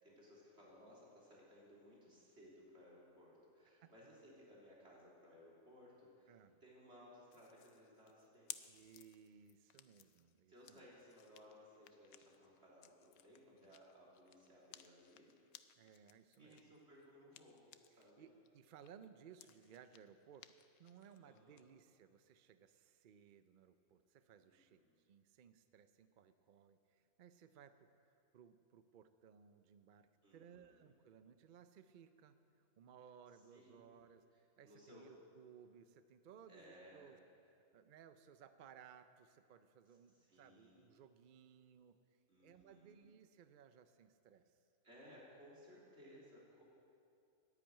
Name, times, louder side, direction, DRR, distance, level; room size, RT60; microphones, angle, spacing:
voice 1, 0.0-6.3 6.6-8.7 10.5-15.3 16.4-18.3 21.2-21.7 24.5-25.0 30.2-30.8 33.5-33.9 34.6-35.1 36.5-37.1 40.2-40.9 42.3-43.0 44.8-46.6, equal, 45° right, -5 dB, 3.5 m, -62 dB
voice 2, 6.3-6.6 8.7-10.9 13.6-13.8 15.7-16.7 17.9-20.5 20.8-37.2 37.5-44.5, right 8 dB, 70° right, 11 dB, 0.4 m, -62 dB
sound 1, 7.3-18.1 18.5-21.6, left 11 dB, 85° left, 1.0 m, -60 dB
11.0 x 10.0 x 8.9 m, 2.5 s
omnidirectional pair, 1.5 m